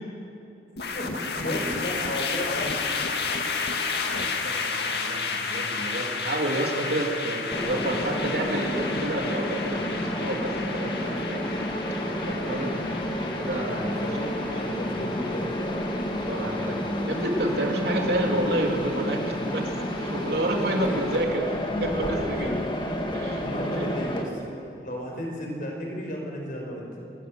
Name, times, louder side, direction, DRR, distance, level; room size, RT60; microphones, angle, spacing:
sound 1, 0.8-20.0, left 4 dB, 70° left, 2.0 m, -33 dB
voice 1, 0.9-2.7 13.7-15.9 20.6-21.1 22.0-22.6 23.4-24.3 24.8-26.9, equal, 50° left, 0 dB, 5.3 m, -34 dB
voice 2, 4.2-11.5 12.2-12.9 13.3-14.1 14.8-15.0 16.2-16.8 17.1-19.7 20.0-22.6 23.1-23.4 23.7-23.9, right 1 dB, 65° right, 0 dB, 3.1 m, -29 dB
Mechanisms, 7.5-24.2, left 1 dB, 25° left, 2.0 m, -30 dB
25.5 x 20.5 x 6.5 m, 2.7 s
head